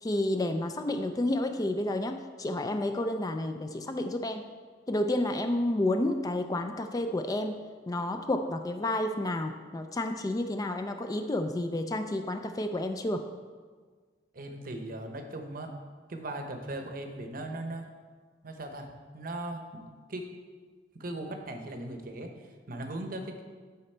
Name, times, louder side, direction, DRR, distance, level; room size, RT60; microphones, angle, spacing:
voice 1, 0.0-4.4 4.9-7.6 7.9-13.3, left 1 dB, 20° left, 7 dB, 0.3 m, -30 dB
voice 2, 14.3-15.7 16.1-17.9 18.4-18.9 19.1-20.3 20.9-23.4, right 1 dB, 50° right, 5 dB, 0.8 m, -38 dB
11.5 x 4.1 x 4.4 m, 1.5 s
head